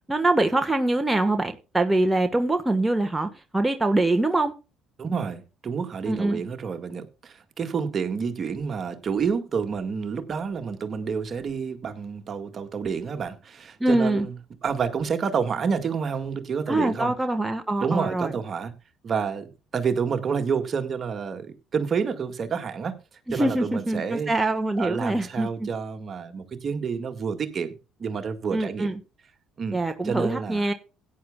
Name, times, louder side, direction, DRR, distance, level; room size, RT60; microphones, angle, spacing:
voice 1, 0.1-4.5 6.1-6.4 13.8-14.3 16.7-18.3 23.3-25.7 28.5-29.0 29.7-30.7, right 2 dB, 10° right, 1.4 m, -24 dB
voice 2, 5.0-14.3 14.6-17.1 17.8-18.7 19.0-23.0 23.3-24.3 24.8-28.9 29.6-30.7, right 6 dB, 45° right, 1.9 m, -29 dB
17.0 x 9.8 x 2.3 m
hypercardioid pair, 65°, 0 cm